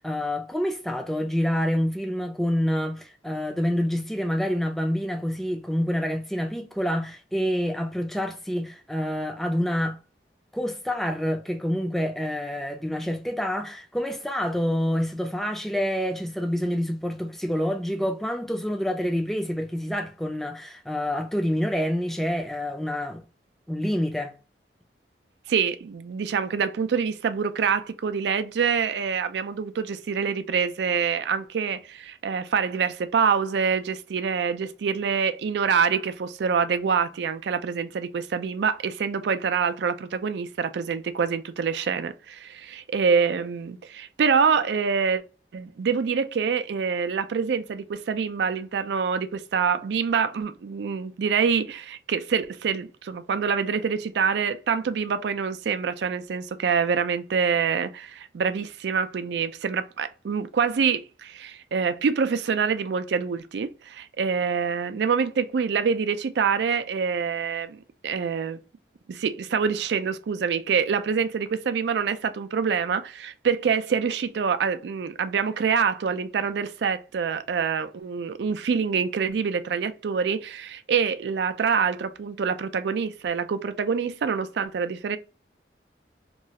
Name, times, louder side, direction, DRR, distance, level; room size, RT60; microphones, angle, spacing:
voice 1, 0.0-10.0 10.5-23.2 23.7-24.4, equal, ahead, 0.4 m, -27 dB
voice 2, 25.5-45.2 45.5-68.6 69.1-85.2, right 6 dB, 75° right, 0.4 m, -26 dB
3.0 x 2.3 x 2.7 m
head